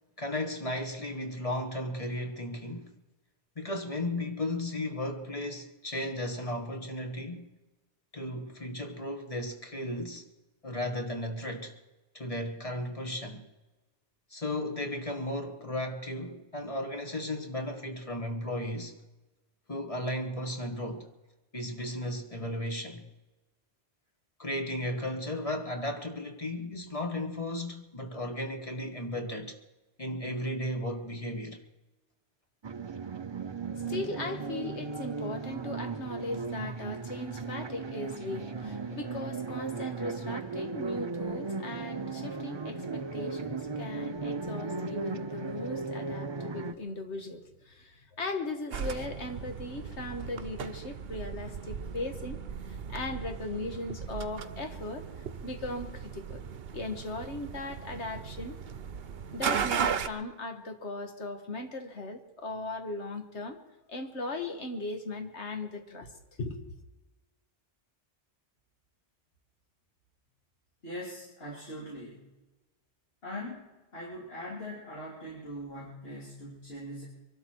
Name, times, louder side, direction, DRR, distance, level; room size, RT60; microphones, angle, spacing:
voice 1, 0.2-2.9 3.5-7.5 8.1-10.2 10.6-11.7 12.1-13.5 14.3-19.0 19.7-21.1 21.5-23.1 24.4-29.6 30.0-31.6, left 1 dB, 30° left, 1.7 m, -35 dB
sound 1, 32.6-46.7, right 4 dB, 35° right, 0.5 m, -36 dB
voice 2, 33.7-52.4 52.6-55.1 55.4-56.4 56.7-58.6 59.3-63.6 63.9-66.1 66.4-66.7, left 2 dB, 80° left, 1.8 m, -38 dB
sound 2, 48.7-60.1, right 7 dB, 60° right, 1.0 m, -37 dB
voice 3, 70.8-72.3 73.2-73.7 73.9-77.1, equal, 60° left, 3.4 m, -41 dB
24.0 x 12.5 x 4.6 m
omnidirectional pair, 1.1 m